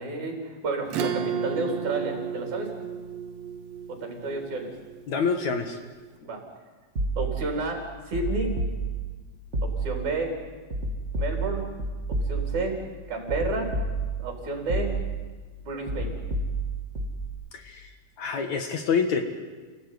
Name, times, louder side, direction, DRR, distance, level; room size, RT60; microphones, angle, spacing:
voice 1, 0.0-2.7 3.9-4.7 6.2-6.4 7.2-8.6 9.6-10.3 11.2-11.7 12.1-12.8 13.1-13.7 14.2-15.0 15.6-16.2, right 3 dB, 55° right, 2 dB, 5.4 m, -31 dB
Acoustic guitar / Strum, 0.9-5.8, right 7 dB, 85° right, 3.2 m, -33 dB
voice 2, 5.1-5.8 17.5-17.9 18.2-19.2, left 5 dB, 60° left, 5 dB, 2.7 m, -26 dB
sound 1, 7.0-7.6 8.1-9.2 9.5-10.2 10.7-12.7 13.3-14.3 14.7-15.3 15.9-17.3, right 2 dB, 25° right, 2.1 m, -30 dB
29.5 x 17.0 x 9.6 m, 1.4 s
omnidirectional pair, 4.0 m